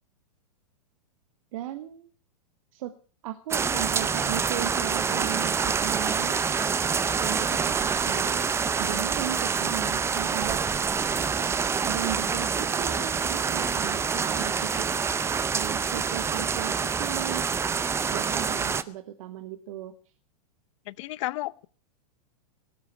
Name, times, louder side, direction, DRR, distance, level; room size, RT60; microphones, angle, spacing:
voice 1, 1.5-2.1 2.7-3.0 3.2-6.4 7.2-8.5 8.8-10.6 11.2-11.6 11.8-14.8 15.5-17.5 18.1-19.9, right 13 dB, 60° right, 9 dB, 1.2 m, -36 dB
sound 1, 3.5-18.8, right 6 dB, 15° right, 0.6 m, -26 dB
voice 2, 20.9-21.7, left 18 dB, 50° left, 21 dB, 0.7 m, -32 dB
18.5 x 7.5 x 8.8 m, 0.41 s
hypercardioid pair, 110°, 20 cm